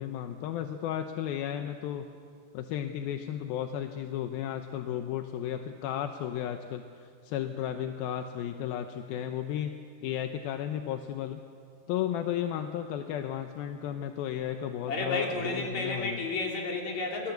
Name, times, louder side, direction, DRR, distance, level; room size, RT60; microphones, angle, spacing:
voice 1, 0.0-2.1 2.5-9.7 10.0-11.4 11.9-16.2, left 10 dB, 75° left, 7 dB, 2.4 m, -34 dB
voice 2, 14.9-17.3, left 3 dB, 45° left, 0 dB, 4.4 m, -32 dB
28.0 x 21.0 x 8.0 m, 2.3 s
omnidirectional pair, 4.9 m